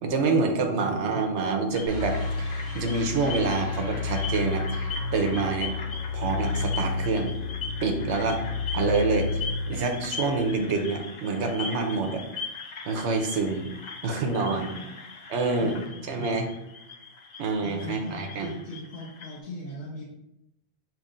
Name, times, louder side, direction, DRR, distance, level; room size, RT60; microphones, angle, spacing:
voice 1, 0.0-2.5 2.7-5.7 6.1-7.3 7.8-8.4 8.7-9.4 9.7-12.2 12.8-13.8 14.0-14.7 15.3-15.7 16.1-16.5 17.4-18.5, right 4 dB, 65° right, 4 dB, 0.9 m, -27 dB
sound 1, 1.7-19.4, left 4 dB, 55° left, 0.4 m, -40 dB
sound 2, 1.9-11.0, left 4 dB, 5° left, 1.0 m, -31 dB
voice 2, 14.5-14.9 15.6-16.1 17.6-20.1, left 2 dB, 85° left, -6 dB, 1.3 m, -39 dB
6.7 x 3.2 x 2.5 m, 0.87 s
omnidirectional pair, 1.3 m